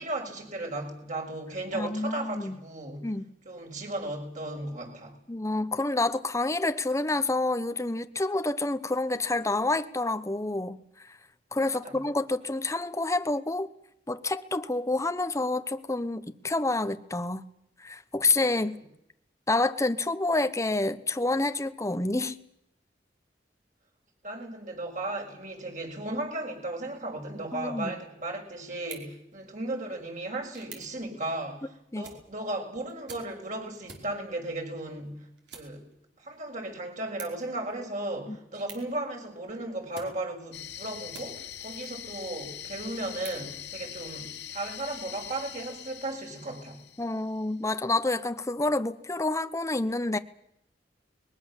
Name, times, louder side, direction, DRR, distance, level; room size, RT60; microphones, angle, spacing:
voice 1, 0.0-3.1 3.4-5.2 11.7-12.0 18.7-18.8 24.2-35.3 35.5-35.9 36.2-46.8, right 2 dB, 45° right, 6.2 m, -36 dB
voice 2, 1.7-2.5 3.0-3.3 5.3-10.8 11.5-13.7 14.1-17.4 17.8-18.8 19.5-22.4 27.5-27.9 31.9-32.0 38.3-38.4 47.0-50.2, left 2 dB, 15° left, 0.9 m, -28 dB
sound 1, 28.7-41.7 42.2-44.3, right 6 dB, 70° right, 5.3 m, -52 dB
sound 2, 40.5-47.4, left 10 dB, 80° left, 2.6 m, -42 dB
22.0 x 21.5 x 7.4 m
head